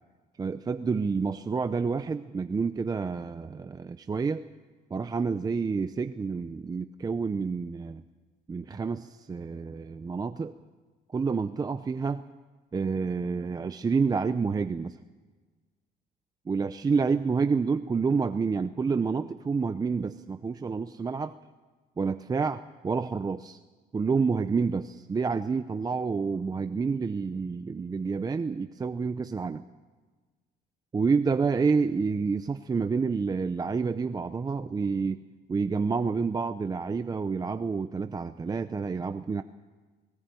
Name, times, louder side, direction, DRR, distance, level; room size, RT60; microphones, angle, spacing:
voice 1, 0.4-4.4 4.9-8.0 8.5-10.5 11.1-12.2 12.7-15.0 16.5-21.4 22.0-22.6 22.8-23.6 23.9-29.6 30.9-35.2 35.5-39.4, right 5 dB, 20° right, 10 dB, 0.6 m, -28 dB
19.0 x 17.5 x 9.1 m, 1.4 s
cardioid pair, 110°, 17 cm